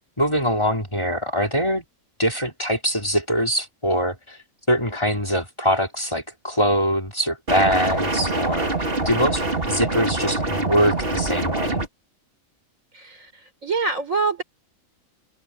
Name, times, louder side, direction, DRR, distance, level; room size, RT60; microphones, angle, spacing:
voice 1, 0.2-1.8 2.2-4.4 4.7-8.7 9.0-11.8, equal, 20° left, 3.3 m, -23 dB
sound 1, 7.5-11.9, right 2 dB, 40° right, 3.1 m, -24 dB
voice 2, 13.6-14.4, right 4 dB, 65° right, 5.2 m, -24 dB
omnidirectional pair, 1.5 m